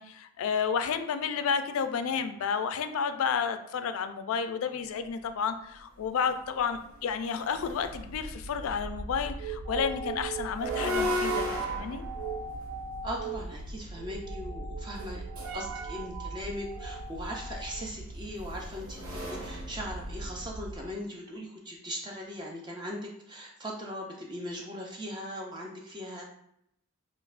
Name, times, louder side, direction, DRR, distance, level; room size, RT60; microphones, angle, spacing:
voice 1, 0.0-12.0, left 6 dB, 75° left, 9 dB, 0.3 m, -31 dB
sound 1, 6.0-6.1 6.6-8.5 10.4-13.6 14.9-15.7 17.1-20.5, left 2 dB, 70° right, 0.8 m, -37 dB
sound 2, 7.6-20.9, right 4 dB, 90° right, 0.4 m, -38 dB
voice 2, 13.0-15.2 15.5-26.3, equal, 20° right, -1 dB, 0.4 m, -39 dB
5.2 x 2.1 x 2.4 m, 0.75 s
head